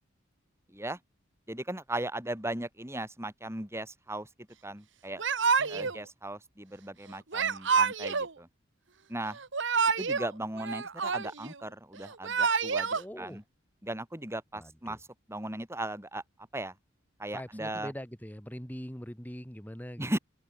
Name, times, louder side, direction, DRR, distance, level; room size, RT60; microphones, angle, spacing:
voice 1, 0.7-1.0 1.5-4.3 4.6-5.2 5.7-8.5 9.1-9.4 10.0-13.4 13.8-15.0 15.3-16.2 16.5-16.7 17.2-17.9 20.0-20.2, right 1 dB, 15° right, 6.0 m, -37 dB
Yell / Crying sobbing, 5.2-6.0 7.3-8.3 9.4-10.3 10.6-11.5 12.1-13.0, right 5 dB, 65° right, 1.4 m, -28 dB
voice 2, 5.6-5.9 12.9-13.4 14.5-15.0 17.3-20.1, equal, 10° left, 4.4 m, -42 dB
head